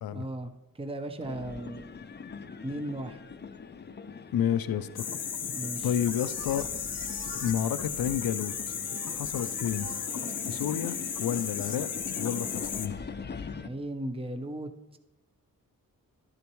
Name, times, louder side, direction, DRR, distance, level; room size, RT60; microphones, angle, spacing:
voice 1, 0.1-1.9 2.6-3.2 5.5-5.9 13.6-15.0, right 1 dB, 15° right, 7 dB, 0.7 m, -36 dB
sound 1, 1.2-13.7, left 5 dB, 30° left, 0.5 m, -42 dB
voice 2, 4.3-5.1 5.8-6.7 7.4-8.7 9.1-9.9 10.5-11.9 12.2-12.9, left 9 dB, 85° left, 13 dB, 0.5 m, -30 dB
sound 2, 4.8-11.8, right 3 dB, 40° right, 1.1 m, -51 dB
sound 3, 5.0-12.9, left 7 dB, 60° left, 0.8 m, -35 dB
12.0 x 10.5 x 3.1 m, 1.0 s
wide cardioid pair, 115°, 34 cm